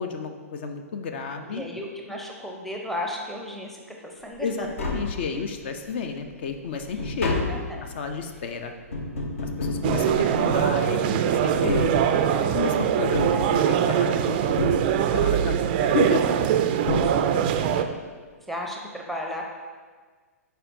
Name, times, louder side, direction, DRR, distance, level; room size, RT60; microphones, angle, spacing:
voice 1, 0.0-1.6 4.4-7.4 7.8-8.7 9.4-12.0 12.3-16.3, left 5 dB, 45° left, 7 dB, 0.5 m, -32 dB
voice 2, 1.5-4.7 6.9-7.0 7.3-7.9 9.9-10.5 16.8-17.1 17.7-17.9 18.5-19.4, left 1 dB, ahead, 0 dB, 0.6 m, -35 dB
Tap, 4.3-4.4 4.6-5.7 6.2-10.9 11.5-12.6 13.1-14.1 14.6-15.4 16.4-16.5 16.9-17.7 18.0-18.1, left 2 dB, 60° left, 1.0 m, -30 dB
sound 1, 9.8-17.8, right 9 dB, 35° right, 0.3 m, -22 dB
11.0 x 4.6 x 2.5 m, 1.5 s
figure-of-eight pair, 115°, 8 cm